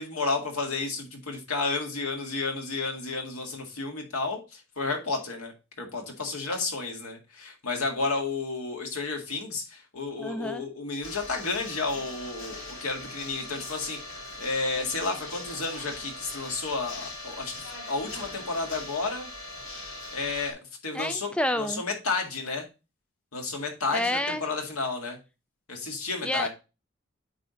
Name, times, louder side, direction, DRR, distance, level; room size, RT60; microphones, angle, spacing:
voice 1, 0.0-14.0 14.4-17.6 17.9-19.3 20.1-22.7 23.3-25.2 25.7-26.5, left 3 dB, 90° left, 2 dB, 2.0 m, -32 dB
voice 2, 10.2-10.6 20.9-21.8 23.9-24.4 26.2-26.5, left 1 dB, 5° left, 10 dB, 0.3 m, -29 dB
sound 1, 11.0-20.5, left 2 dB, 65° left, 2.2 m, -40 dB
9.0 x 3.7 x 3.9 m, 0.28 s
head